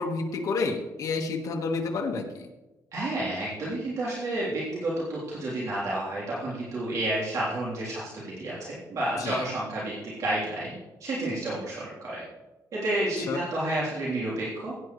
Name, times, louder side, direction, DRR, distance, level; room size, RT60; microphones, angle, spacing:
voice 1, 0.0-2.5 9.1-9.5 13.3-13.4, left 4 dB, 55° left, 2 dB, 1.5 m, -30 dB
voice 2, 2.9-12.2 12.7-14.7, right 1 dB, 55° right, -7 dB, 3.4 m, -30 dB
16.0 x 9.3 x 3.2 m, 1.1 s
cardioid pair, 140°, 7 cm